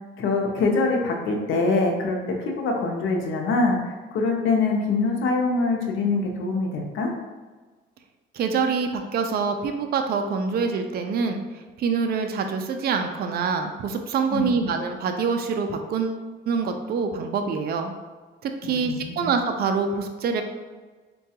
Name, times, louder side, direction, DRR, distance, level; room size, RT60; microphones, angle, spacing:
voice 1, 0.2-7.1 14.3-14.7 18.6-19.3, left 3 dB, 80° left, 1 dB, 0.6 m, -24 dB
voice 2, 8.3-17.9 18.4-20.4, right 5 dB, 50° right, 5 dB, 0.4 m, -26 dB
4.6 x 2.2 x 2.8 m, 1.4 s
cardioid pair, 90°, 20 cm